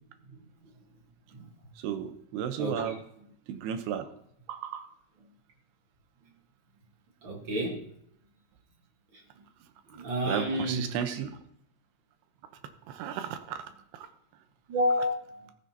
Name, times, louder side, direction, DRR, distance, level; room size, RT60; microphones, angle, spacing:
voice 1, 1.8-3.0 3.5-4.1 4.5-4.9 10.3-11.3 12.9-13.6 13.9-14.1, right 9 dB, 85° right, 8 dB, 2.9 m, -34 dB
voice 2, 2.6-2.9 7.2-7.9 9.1-9.2 9.9-11.1 14.7-15.5, equal, 55° right, 1 dB, 1.4 m, -30 dB
15.0 x 13.5 x 2.9 m, 0.70 s
omnidirectional pair, 4.7 m